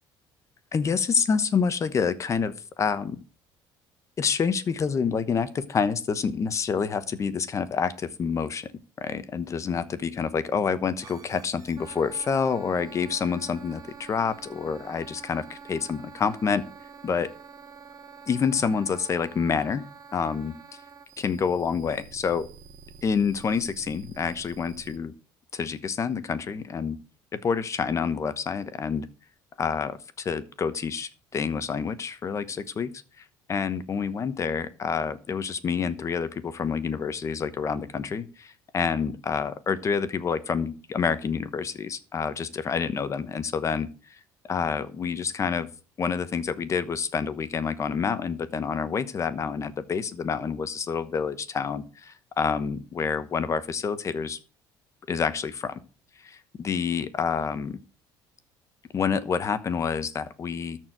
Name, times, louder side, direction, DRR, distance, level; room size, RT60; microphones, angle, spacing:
voice 1, 0.7-3.2 4.2-8.7 9.0-16.6 17.0-17.3 18.3-19.8 20.1-20.5 21.2-22.5 23.0-25.1 25.5-27.0 27.3-29.1 29.6-32.9 33.2-45.7 46.0-54.4 55.1-55.8 56.2-57.8 58.9-60.8, left 6 dB, 35° left, 14 dB, 1.1 m, -28 dB
sound 1, 11.0-25.0, right 5 dB, 40° right, 1.8 m, -47 dB
13.0 x 4.6 x 7.9 m, 0.36 s
cardioid pair, 115°, 9 cm